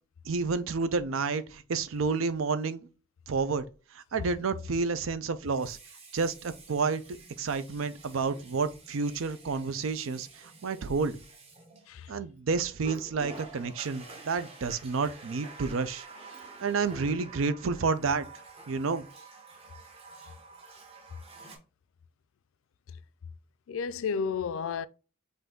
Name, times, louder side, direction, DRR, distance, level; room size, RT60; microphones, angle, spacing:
voice 1, 0.3-2.9 3.3-3.6 4.1-5.8 6.1-7.0 7.4-10.3 10.6-11.2 12.1-16.1 16.6-18.3 18.7-19.1, right 4 dB, 80° right, 0.5 m, -30 dB
Water tap faucet, 1.8-2.0 5.4-12.3 12.8-21.6, right 3 dB, 30° right, 0.9 m, -49 dB
voice 2, 23.7-24.9, left 6 dB, 80° left, 0.3 m, -32 dB
5.5 x 2.6 x 3.7 m
head